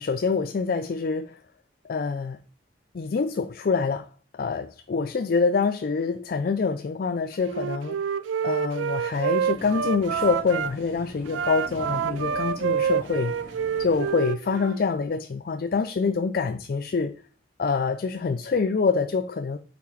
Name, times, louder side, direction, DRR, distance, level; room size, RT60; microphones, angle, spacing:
voice 1, 0.0-1.4 1.9-2.4 2.9-4.1 4.3-8.0 8.4-13.4 13.8-17.1 17.6-19.6, left 4 dB, 50° left, 0.4 m, -26 dB
Wind instrument woodwind instrument, 7.4-10.7 11.3-14.8, right 7 dB, 70° right, 0.3 m, -28 dB
sound 1, 9.1-14.1, right 1 dB, 10° right, 2.7 m, -44 dB
5.9 x 3.9 x 4.8 m
head